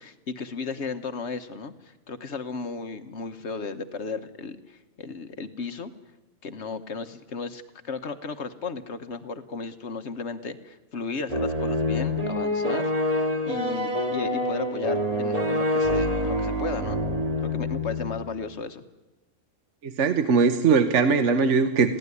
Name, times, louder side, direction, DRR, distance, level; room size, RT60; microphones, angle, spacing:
voice 1, 0.0-5.9 6.4-17.0 17.4-18.8, left 4 dB, 60° left, 9 dB, 1.4 m, -35 dB
sound 1, 11.3-18.2, left 1 dB, 30° right, 1.9 m, -26 dB
voice 2, 19.8-22.0, right 5 dB, 65° right, 9 dB, 1.3 m, -21 dB
22.0 x 16.0 x 9.8 m, 1.1 s
omnidirectional pair, 1.4 m